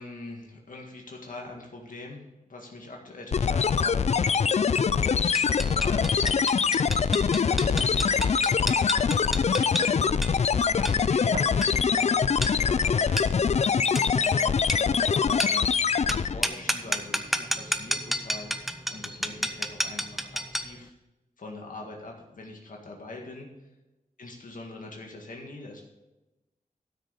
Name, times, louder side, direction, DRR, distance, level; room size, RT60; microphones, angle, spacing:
voice 1, 0.0-6.8 7.4-15.7 16.1-20.3 20.5-20.9 21.4-23.5 24.2-25.8, left 2 dB, 65° left, 0 dB, 2.0 m, -43 dB
sound 1, 3.3-16.5, left 6 dB, 50° left, 0.4 m, -24 dB
sound 2, 5.3-20.8, equal, ahead, 0.8 m, -33 dB
sound 3, 6.2-6.5 6.9-7.1 7.8-8.0 8.9-9.0 9.8-10.0 10.8-10.9 11.3-11.8, right 4 dB, 70° right, 0.8 m, -40 dB
12.5 x 6.5 x 5.4 m, 1.0 s
wide cardioid pair, 100°, 15 cm